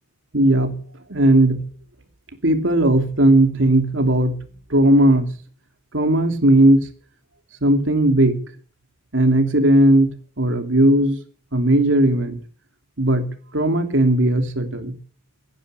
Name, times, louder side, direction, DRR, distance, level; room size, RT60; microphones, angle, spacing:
voice 1, 0.3-0.8 1.1-1.6 2.4-4.4 4.7-5.3 5.9-6.9 7.6-8.4 9.1-11.2 11.5-12.4 13.0-13.3 13.5-15.0, right 1 dB, 80° right, 6 dB, 2.8 m, -17 dB
17.0 x 10.0 x 6.9 m, 0.44 s
head